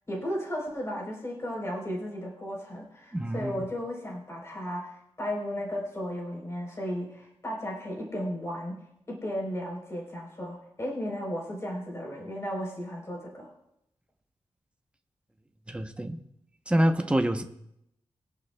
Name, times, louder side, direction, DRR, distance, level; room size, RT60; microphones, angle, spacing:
voice 1, 0.1-8.8 9.1-13.5, equal, 25° left, -2 dB, 3.5 m, -35 dB
voice 2, 3.1-3.6 15.7-16.2 16.7-17.4, right 1 dB, 10° right, 6 dB, 0.7 m, -26 dB
22.0 x 11.0 x 2.2 m, 0.78 s
wide cardioid pair, 175°, 11 cm